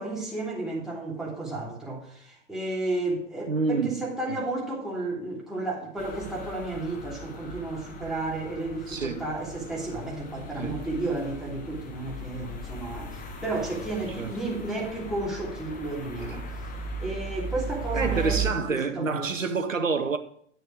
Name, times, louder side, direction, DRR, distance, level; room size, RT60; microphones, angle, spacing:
voice 1, 0.0-16.5 17.0-18.4 18.7-19.3, right 2 dB, ahead, 2.9 m, -32 dB
voice 2, 3.5-4.4 8.9-9.3 10.6-10.8 14.2-14.4 16.3-16.4 17.9-20.2, right 4 dB, 90° right, 0.7 m, -28 dB
sound 1, 6.0-18.5, right 3 dB, 20° left, 1.4 m, -37 dB
10.5 x 6.4 x 4.8 m
figure-of-eight pair, 95°, 38 cm